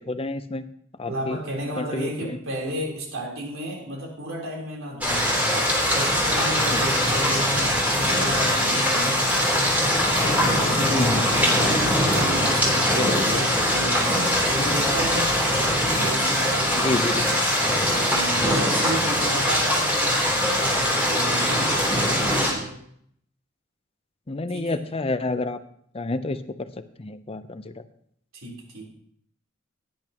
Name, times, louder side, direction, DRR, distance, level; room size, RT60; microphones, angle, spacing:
voice 1, 0.1-0.7 1.0-1.4 1.8-2.4 6.7-6.9 10.9-11.2 12.9-13.4 16.8-17.3 24.3-25.6 25.9-26.7 27.0-27.7, left 2 dB, 30° left, 11 dB, 0.6 m, -28 dB
voice 2, 1.0-5.5 5.9-9.9 10.2-11.8 12.1-15.4 15.8-16.8 17.5-20.3 20.5-22.8 24.5-24.8 28.3-28.9, right 1 dB, 85° right, -1 dB, 3.8 m, -33 dB
sound 1, 5.0-22.5, equal, 10° right, 3.5 m, -22 dB
17.0 x 10.5 x 3.0 m, 0.67 s
head